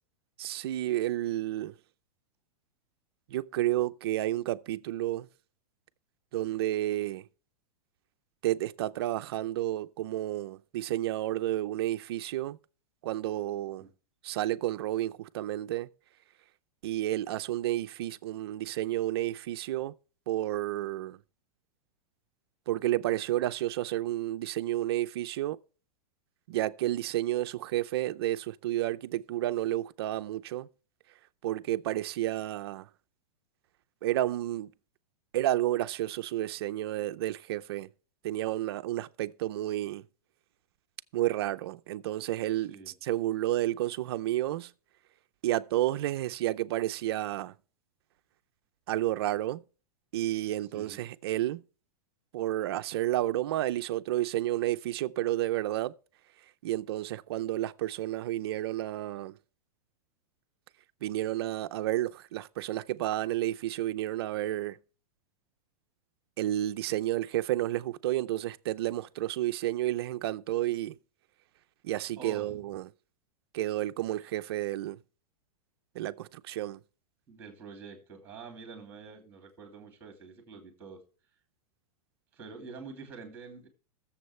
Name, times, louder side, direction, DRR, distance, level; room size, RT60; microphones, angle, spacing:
voice 1, 0.4-1.7 3.3-5.3 6.3-7.2 8.4-12.6 13.0-13.9 14.2-15.9 16.8-19.9 20.3-21.2 22.7-25.6 26.5-30.7 31.4-32.9 34.0-34.7 35.3-37.9 38.2-40.0 41.1-42.8 43.0-44.7 45.4-47.5 48.9-49.6 50.1-51.6 52.3-55.9 56.6-59.4 61.0-64.8 66.4-71.0 71.8-72.9 73.5-75.0 75.9-76.8, right 14 dB, 40° right, 0.5 m, -31 dB
voice 2, 42.5-42.9 50.7-51.0 72.2-72.6 77.3-81.0 82.3-83.7, right 5 dB, 10° right, 2.6 m, -47 dB
21.5 x 7.2 x 3.2 m
supercardioid pair, 180°, 19 cm